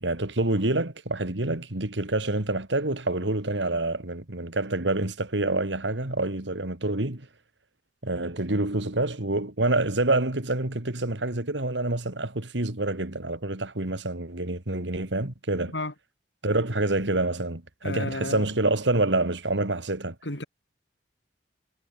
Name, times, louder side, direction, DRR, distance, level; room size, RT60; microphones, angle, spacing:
voice 1, 0.0-7.3 8.0-15.7 16.4-20.1, right 2 dB, 90° right, 2.5 m, -27 dB
voice 2, 17.8-18.5 20.2-20.4, left 2 dB, 75° left, 7.6 m, -32 dB
head